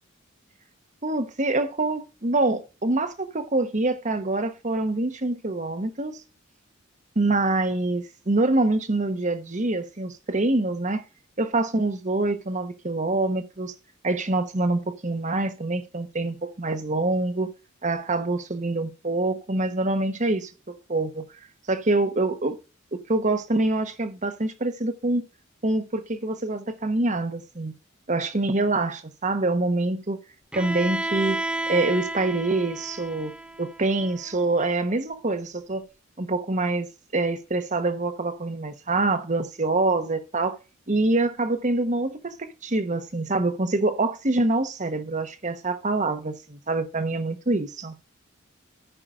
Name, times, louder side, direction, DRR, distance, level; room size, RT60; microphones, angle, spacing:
voice 1, 1.0-6.2 7.1-11.0 11.4-13.7 14.0-17.5 17.8-21.2 21.7-22.6 22.9-25.2 25.6-27.7 28.1-30.2 30.5-31.4 31.7-35.9 36.2-40.6 40.9-48.0, right 2 dB, 35° right, 1.1 m, -25 dB
Bowed string instrument, 30.5-34.4, right 2 dB, 5° right, 0.5 m, -32 dB
14.5 x 5.9 x 3.7 m
head